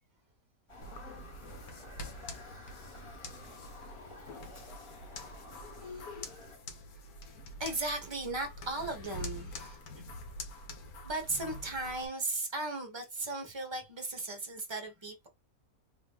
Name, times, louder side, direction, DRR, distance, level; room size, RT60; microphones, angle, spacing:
Motor vehicle (road) / Siren, 0.7-6.6, left 2 dB, 20° left, 1.1 m, -51 dB
sound 1, 0.8-12.1, left 2 dB, 75° left, 1.4 m, -46 dB
voice 1, 7.6-9.8 11.0-15.3, right 2 dB, 20° right, 1.0 m, -36 dB
3.1 x 2.9 x 3.5 m
omnidirectional pair, 1.6 m